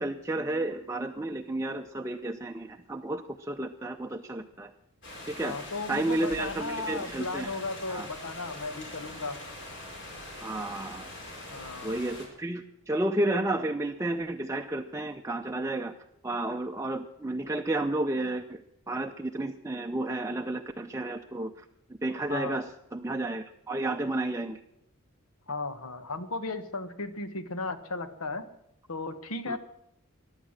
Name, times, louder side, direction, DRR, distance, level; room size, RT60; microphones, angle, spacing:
voice 1, 0.0-4.7 5.3-5.6 5.9-7.5 7.9-8.1 10.4-11.1 11.8-15.9 16.2-18.6 18.9-21.6 22.0-24.6 29.5-29.6, right 2 dB, 15° right, 4 dB, 0.5 m, -32 dB
sound 1, 5.0-12.3, left 1 dB, 55° left, 4.5 m, -43 dB
voice 2, 5.4-9.4 11.5-12.0 22.3-22.6 25.5-28.5 28.9-29.6, left 3 dB, 85° left, 11 dB, 1.4 m, -35 dB
15.5 x 11.0 x 7.3 m, 0.81 s
head